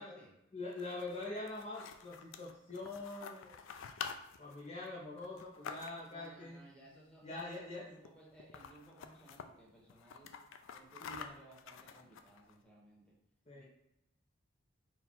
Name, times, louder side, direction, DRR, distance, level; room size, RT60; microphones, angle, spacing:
voice 1, 0.0-0.4 6.1-10.3 10.7-13.1 13.5-13.6, right 2 dB, 5° left, -5 dB, 1.2 m, -59 dB
voice 2, 0.5-3.5 4.4-6.6 7.2-7.9 11.0-11.3 13.5-13.6, left 2 dB, 35° left, -5 dB, 0.6 m, -44 dB
sound 1, 0.6-6.3 7.3-7.8 8.0-8.1 8.4-9.5 9.9-12.5, left 6 dB, 70° left, 0.3 m, -49 dB
4.1 x 2.3 x 4.4 m, 0.82 s
head